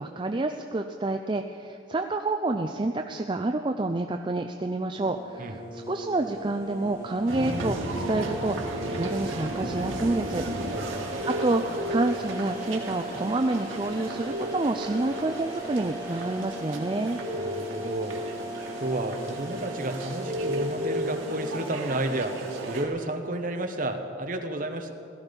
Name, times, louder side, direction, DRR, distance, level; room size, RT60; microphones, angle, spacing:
voice 1, 0.0-10.5 11.3-17.2, right 2 dB, 25° right, 5 dB, 0.4 m, -28 dB
sound 1, 5.0-22.8, right 1 dB, 20° left, 4.9 m, -39 dB
sound 2, 7.3-22.9, right 1 dB, 90° right, 2.1 m, -34 dB
voice 2, 10.7-11.1 17.3-18.2 18.7-24.9, right 1 dB, 45° right, 5 dB, 1.1 m, -32 dB
17.5 x 13.5 x 5.3 m, 2.6 s
head